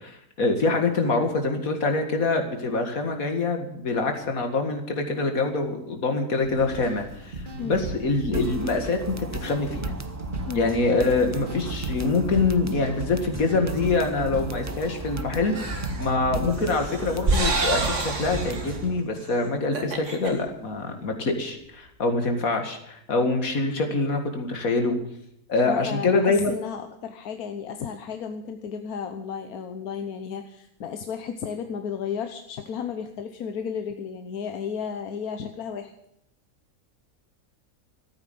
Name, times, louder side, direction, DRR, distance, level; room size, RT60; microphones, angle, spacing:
voice 1, 0.0-7.4 7.6-9.9 10.5-25.0 25.5-26.6, left 3 dB, 70° left, 5 dB, 2.5 m, -25 dB
sound 1, 6.4-18.9, right 2 dB, 35° right, 2.0 m, -36 dB
sound 2, 8.3-19.0, right 2 dB, 20° right, 0.5 m, -37 dB
sound 3, 15.6-16.0 16.6-18.8 19.2-19.3 19.6-20.3, right 3 dB, 55° right, 2.2 m, -27 dB
voice 2, 25.7-35.9, left 7 dB, 90° left, 6 dB, 1.4 m, -33 dB
14.0 x 9.1 x 9.3 m, 0.75 s
omnidirectional pair, 1.5 m